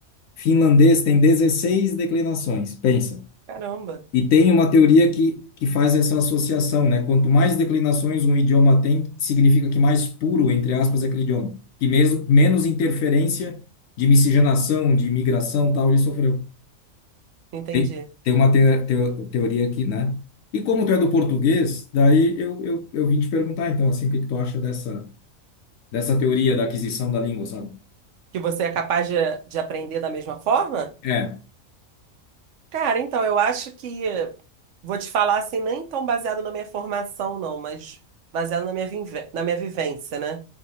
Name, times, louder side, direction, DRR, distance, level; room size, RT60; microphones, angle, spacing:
voice 1, 0.4-3.2 4.1-13.6 14.0-16.4 17.7-17.9 18.2-20.2 20.5-25.1 25.9-27.7 31.0-31.4, left 3 dB, 75° left, 1.0 m, -19 dB
voice 2, 3.5-4.0 17.5-18.0 28.3-30.9 32.7-34.3 34.8-38.0 38.3-40.4, right 6 dB, 65° right, 0.9 m, -26 dB
3.6 x 2.8 x 4.0 m
omnidirectional pair, 1.4 m